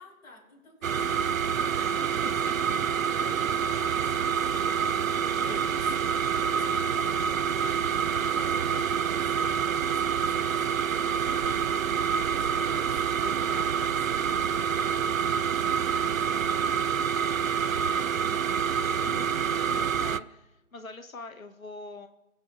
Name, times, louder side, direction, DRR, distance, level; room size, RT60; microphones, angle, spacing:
voice 1, 0.0-19.7, left 2 dB, 15° left, -5 dB, 3.4 m, -52 dB
sound 1, 0.8-20.2, right 7 dB, 70° right, 0.5 m, -27 dB
voice 2, 2.2-2.8 5.5-5.6 6.2-6.4 13.2-13.7 14.0-14.1 16.8-17.5 18.5-18.6 18.9-22.1, left 3 dB, 70° left, 7 dB, 0.9 m, -44 dB
22.5 x 7.6 x 2.4 m, 1.0 s
figure-of-eight pair, 145°, 42 cm